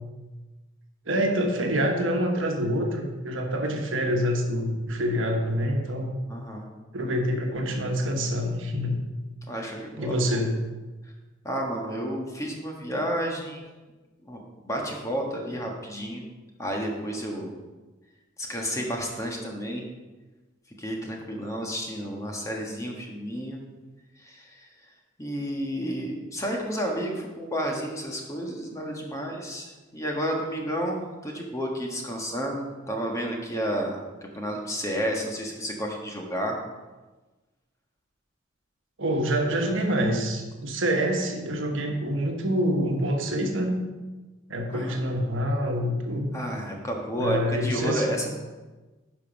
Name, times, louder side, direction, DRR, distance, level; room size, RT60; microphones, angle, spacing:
voice 1, 1.1-6.1 6.9-9.0 10.0-10.5 39.0-43.8 44.5-46.4 47.2-48.3, equal, 75° right, 2 dB, 1.3 m, -26 dB
voice 2, 6.3-6.7 9.5-10.4 11.4-13.6 14.2-16.3 16.6-17.5 18.4-19.8 20.8-23.6 24.2-24.7 25.2-36.6 44.7-45.0 46.3-48.3, equal, 15° left, 0 dB, 1.4 m, -31 dB
11.0 x 5.3 x 5.2 m, 1.2 s
head